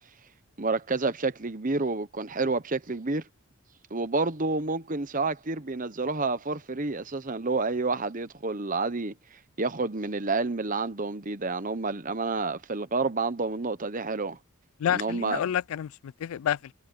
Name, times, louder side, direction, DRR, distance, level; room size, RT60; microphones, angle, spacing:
voice 1, 0.6-3.2 3.9-14.4 14.9-15.4, right 3 dB, 35° right, 1.0 m, -29 dB
voice 2, 14.8-16.7, left 9 dB, 75° left, 0.3 m, -29 dB
head